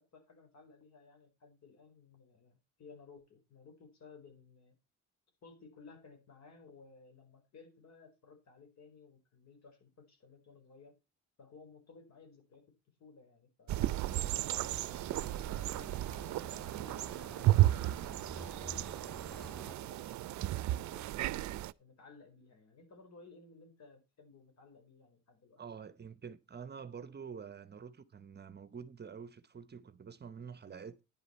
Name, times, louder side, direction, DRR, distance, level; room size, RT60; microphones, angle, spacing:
voice 1, 0.0-4.7 5.4-11.0 11.4-12.7 13.0-21.4 21.8-25.6, left 4 dB, 60° left, 4.6 m, -58 dB
sound 1, 13.7-21.7, right 16 dB, 70° right, 0.5 m, -33 dB
sound 2, 14.1-19.7, right 1 dB, 5° left, 2.2 m, -51 dB
voice 2, 25.6-31.0, right 6 dB, 35° right, 0.9 m, -47 dB
10.5 x 10.5 x 4.2 m
cardioid pair, 90°, 30 cm